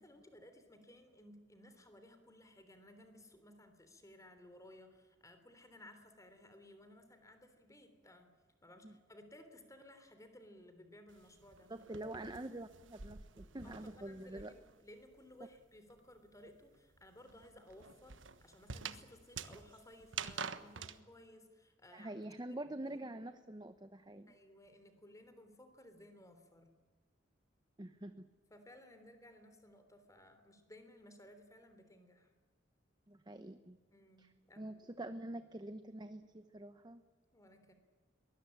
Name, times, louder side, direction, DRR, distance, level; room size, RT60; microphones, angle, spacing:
voice 1, 0.0-8.3 8.6-11.7 13.6-22.2 22.5-23.0 24.3-26.7 28.5-32.3 33.9-34.7 37.3-37.7, left 1 dB, 15° left, 8 dB, 3.4 m, -59 dB
sound 1, 11.1-14.8 15.1-21.0, right 6 dB, 80° right, 1.3 m, -48 dB
voice 2, 11.7-14.5 21.9-24.3 27.8-28.3 33.1-33.8 34.2-34.3 34.6-37.0, right 1 dB, 20° right, 10 dB, 0.9 m, -46 dB
23.0 x 21.0 x 8.9 m, 1.4 s
head